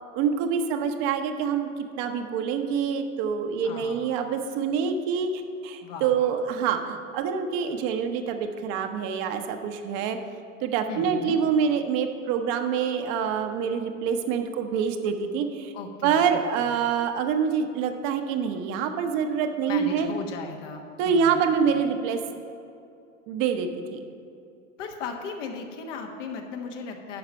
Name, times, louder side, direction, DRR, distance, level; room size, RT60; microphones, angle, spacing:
voice 1, 0.0-1.7 2.0-10.2 10.6-15.7 16.0-20.1 21.0-22.2 23.3-24.1, right 7 dB, 50° right, 6 dB, 0.9 m, -26 dB
voice 2, 3.6-4.1 5.8-6.2 10.9-11.4 15.7-16.7 19.7-21.4 21.7-21.8 24.8-27.2, left 5 dB, 65° left, 3 dB, 1.4 m, -37 dB
9.6 x 5.9 x 5.5 m, 2.5 s
hypercardioid pair, 95°, 40 cm